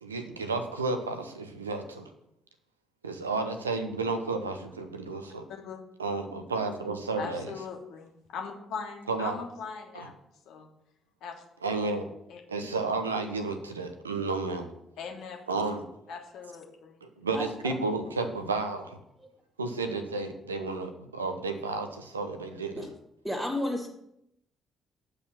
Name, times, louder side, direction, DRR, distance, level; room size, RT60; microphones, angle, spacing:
voice 1, 0.0-2.0 3.0-5.4 6.0-7.5 9.1-9.4 9.9-10.1 11.6-12.0 12.5-14.7 15.5-15.8 17.0-19.0 19.6-22.9, right 3 dB, 90° right, 7 dB, 0.7 m, -32 dB
voice 2, 7.2-10.1 10.4-10.7 11.2-11.7 12.3-12.4 15.0-15.4 16.1-17.0, left 5 dB, 65° left, 2 dB, 1.4 m, -40 dB
voice 3, 17.3-17.7 22.7-22.9 23.2-23.9, left 1 dB, 5° right, 2 dB, 2.0 m, -32 dB
8.4 x 4.9 x 5.8 m, 0.80 s
figure-of-eight pair, 45°, 0 cm